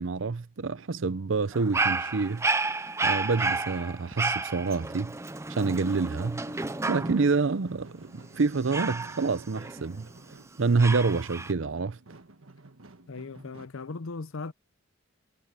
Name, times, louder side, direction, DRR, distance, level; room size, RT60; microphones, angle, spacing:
voice 1, 0.0-2.5 3.0-5.2 5.6-6.4 6.9-10.1 10.6-12.0, right 4 dB, 65° right, 0.6 m, -27 dB
Dog, 1.5-7.4 8.7-10.2 10.8-11.5, right 3 dB, 15° right, 0.6 m, -31 dB
sound 1, 3.7-11.4, equal, 30° right, 5.9 m, -59 dB
sound 2, 6.3-13.7, right 2 dB, 80° right, 1.5 m, -51 dB
voice 2, 13.1-14.5, left 3 dB, 75° left, 0.7 m, -38 dB
head